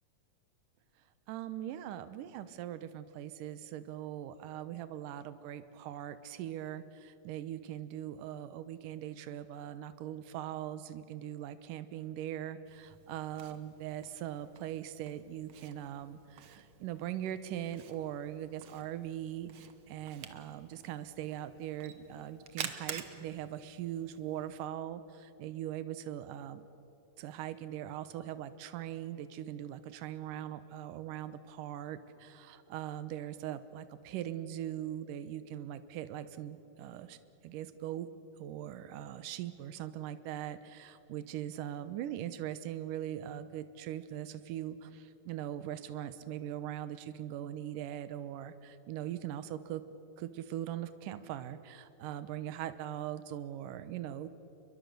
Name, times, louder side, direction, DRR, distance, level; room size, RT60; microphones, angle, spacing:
voice 1, 1.3-26.6 27.2-37.2 37.4-38.1 38.4-49.8 50.2-54.3, right 11 dB, 80° right, 12 dB, 2.5 m, -41 dB
Camera, 12.7-24.7, right 8 dB, 55° right, 1.6 m, -49 dB
29.5 x 22.5 x 6.8 m, 2.9 s
omnidirectional pair, 3.9 m